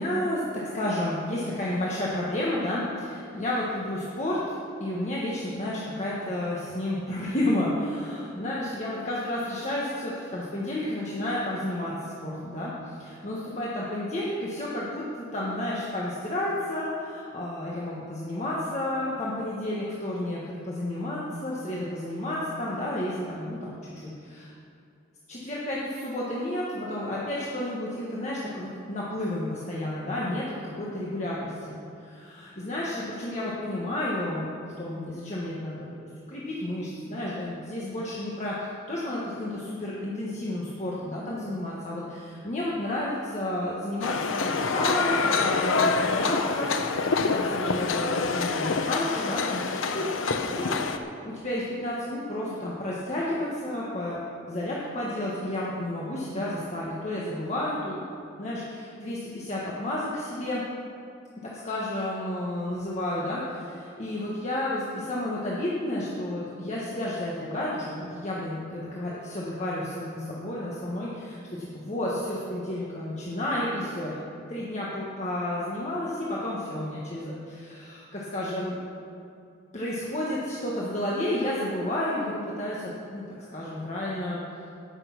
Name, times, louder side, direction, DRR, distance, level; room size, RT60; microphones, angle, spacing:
voice 1, 0.0-4.4 4.8-24.5 25.3-50.1 50.4-50.8 51.2-54.2 54.5-58.1 58.4-60.6 61.4-74.2 74.5-78.8 79.7-83.2 83.5-84.4, left 1 dB, 35° left, -6 dB, 1.5 m, -31 dB
sound 1, 44.0-51.0, left 4 dB, 90° left, 0.8 m, -26 dB
17.0 x 6.6 x 5.9 m, 2.5 s
head